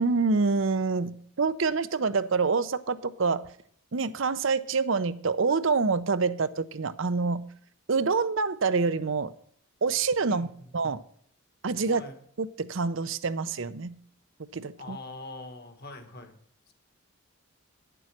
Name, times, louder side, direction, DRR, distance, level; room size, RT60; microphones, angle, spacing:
voice 1, 0.0-3.4 3.9-7.4 7.9-9.3 9.8-10.5 10.7-11.0 11.6-12.0 12.4-13.9 14.5-15.0, right 4 dB, 60° right, 13 dB, 0.6 m, -26 dB
voice 2, 10.3-10.7 11.9-12.2 14.8-16.4 16.7-16.8, left 2 dB, 45° left, 7 dB, 1.6 m, -43 dB
9.9 x 6.9 x 5.9 m, 0.62 s
head